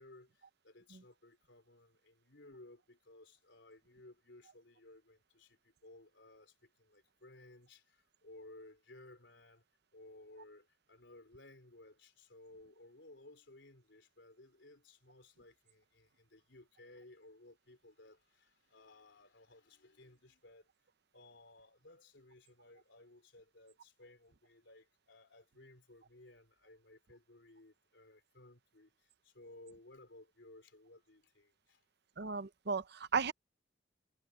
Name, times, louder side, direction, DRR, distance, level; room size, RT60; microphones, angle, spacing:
voice 1, 0.0-9.6 9.9-20.7 21.1-31.8, left 2 dB, 70° left, 3.9 m, -59 dB
voice 2, 32.2-33.3, right 5 dB, 60° right, 0.8 m, -35 dB
head